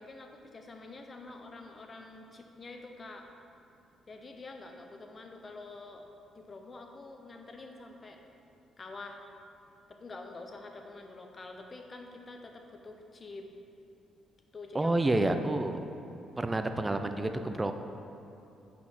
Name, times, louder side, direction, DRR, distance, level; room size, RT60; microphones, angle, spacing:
voice 1, 0.0-3.3 4.1-6.0 6.4-8.2 8.8-9.2 9.9-13.5 14.5-14.9, left 3 dB, 35° left, 3 dB, 0.7 m, -47 dB
voice 2, 14.7-15.8 16.4-17.7, right 2 dB, 20° right, 7 dB, 0.4 m, -29 dB
5.5 x 4.1 x 6.0 m, 2.7 s
cardioid pair, 90°, 0 cm